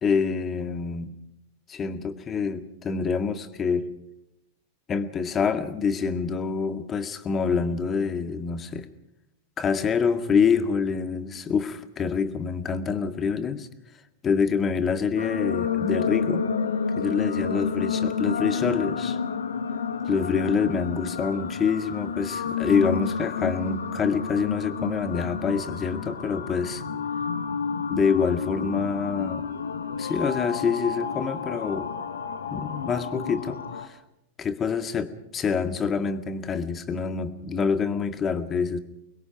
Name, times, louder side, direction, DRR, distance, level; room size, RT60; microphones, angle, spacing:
voice 1, 0.0-1.1 1.7-3.9 4.9-8.9 9.6-13.7 14.2-16.4 17.0-19.2 20.0-26.8 27.9-29.4 30.0-31.9 32.5-34.0 34.4-38.8, left 5 dB, 25° left, 10 dB, 1.9 m, -26 dB
sound 1, 15.2-33.9, left 6 dB, 80° left, 1.6 m, -30 dB
24.5 x 21.5 x 6.0 m, 0.85 s
figure-of-eight pair, 95°, 0 cm